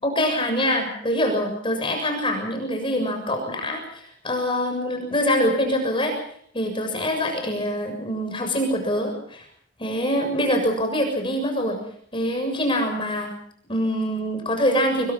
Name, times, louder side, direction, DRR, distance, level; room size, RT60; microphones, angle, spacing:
voice 1, 0.0-6.1 6.5-9.4 9.8-11.8 12.1-13.3 13.7-15.1, equal, 25° left, 4 dB, 7.0 m, -24 dB
25.5 x 24.0 x 5.7 m, 0.65 s
head